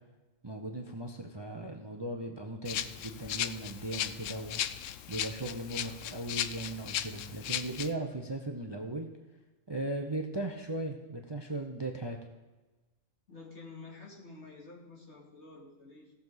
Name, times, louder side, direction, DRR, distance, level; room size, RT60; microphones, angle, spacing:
voice 1, 0.4-4.6 5.1-9.1 9.7-12.2, right 2 dB, 25° right, 3 dB, 0.8 m, -37 dB
Rattle (instrument), 2.7-7.9, left 11 dB, 75° left, 0.9 m, -36 dB
voice 2, 13.3-16.1, left 3 dB, 60° left, -4 dB, 3.0 m, -49 dB
17.0 x 7.0 x 4.0 m, 1.2 s
omnidirectional pair, 1.3 m